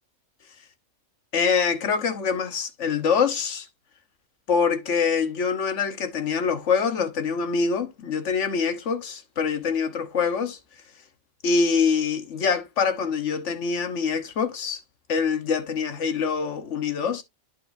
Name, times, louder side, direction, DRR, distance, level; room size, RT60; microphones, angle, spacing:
voice 1, 1.3-3.7 4.5-10.6 11.4-14.8 15.1-17.2, left 5 dB, 60° left, 1.4 m, -25 dB
11.5 x 4.8 x 2.6 m
omnidirectional pair, 1.4 m